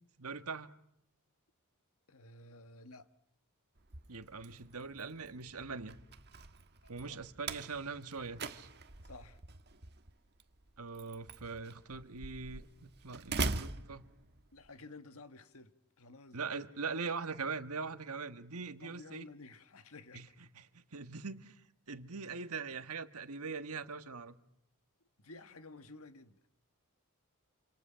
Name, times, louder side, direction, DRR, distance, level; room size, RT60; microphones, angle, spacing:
voice 1, 0.2-0.7 4.1-6.0 6.9-8.7 10.8-14.1 16.3-19.3 20.1-20.3 20.5-21.6 21.9-24.4, right 4 dB, 75° right, 1.5 m, -42 dB
voice 2, 2.1-3.1 6.8-7.3 9.0-9.4 14.5-16.5 18.8-20.4 25.2-26.4, left 2 dB, 70° left, 1.6 m, -53 dB
Slam, 3.8-14.7, right 3 dB, 50° right, 1.4 m, -43 dB
28.0 x 27.5 x 5.7 m
head